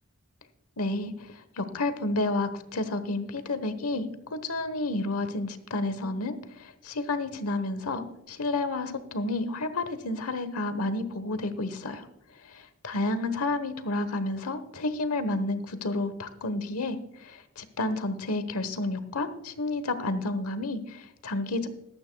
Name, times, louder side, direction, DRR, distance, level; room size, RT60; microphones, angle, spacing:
voice 1, 0.8-12.1 12.4-21.7, left 2 dB, 80° left, 11 dB, 1.1 m, -31 dB
15.0 x 13.0 x 2.3 m, 0.87 s
head